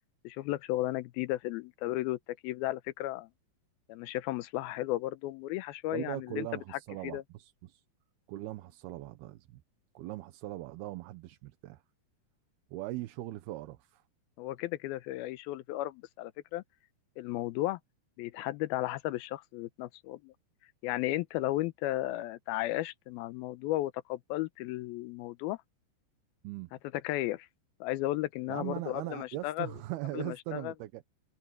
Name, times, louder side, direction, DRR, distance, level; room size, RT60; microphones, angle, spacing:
voice 1, 0.2-3.3 3.9-6.5 6.7-7.2 14.4-16.6 17.2-17.8 18.2-20.3 20.8-25.6 27.0-27.5 27.8-29.7 30.1-30.7, left 16 dB, 75° left, 2.5 m, -34 dB
voice 2, 5.9-7.8 8.3-9.6 9.9-11.8 12.7-14.0 26.4-26.7 28.5-31.0, right 16 dB, 75° right, 2.8 m, -40 dB
omnidirectional pair, 4.7 m